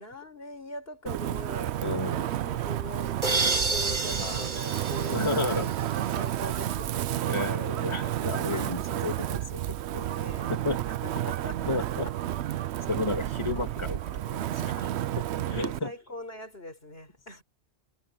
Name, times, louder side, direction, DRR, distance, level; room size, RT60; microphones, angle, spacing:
voice 1, 0.0-5.2 5.8-7.1 10.0-10.5 11.0-12.1 14.8-15.0 15.5-17.4, left 1 dB, 60° left, 5.3 m, -42 dB
Wind, 1.1-15.8, right 12 dB, 80° right, 0.9 m, -31 dB
voice 2, 1.8-2.3 4.1-4.4 5.1-5.8 7.2-9.6 9.9-10.0 10.5-10.8 11.6-12.1 12.9-14.8 15.5-15.9, left 3 dB, 25° left, 2.7 m, -32 dB
sound 1, 3.2-6.1, right 3 dB, 45° right, 1.8 m, -30 dB
omnidirectional pair, 1.1 m